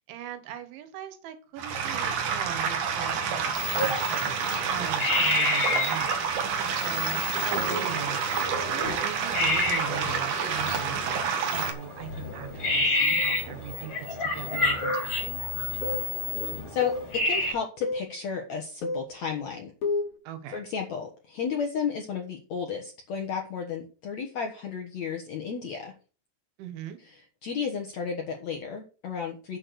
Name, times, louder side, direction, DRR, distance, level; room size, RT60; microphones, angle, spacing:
voice 1, 0.1-4.3 4.7-6.2 6.7-8.2 8.6-13.9 14.3-15.4 20.3-20.6 26.6-27.0, right 9 dB, 85° right, 9 dB, 3.8 m, -39 dB
sound 1, 1.6-11.7, right 6 dB, 60° right, 2.3 m, -29 dB
sound 2, 3.5-17.5, left 2 dB, 30° left, 5.5 m, -30 dB
sound 3, 14.8-15.1 15.8-16.1 16.8-17.1 17.8-18.1 18.8-19.1 19.8-20.1, left 2 dB, 55° left, 4.3 m, -30 dB
voice 2, 16.7-19.7 20.5-25.9 27.0-29.6, left 6 dB, 80° left, 2 dB, 1.5 m, -33 dB
8.7 x 6.6 x 6.4 m, 0.37 s
omnidirectional pair, 5.3 m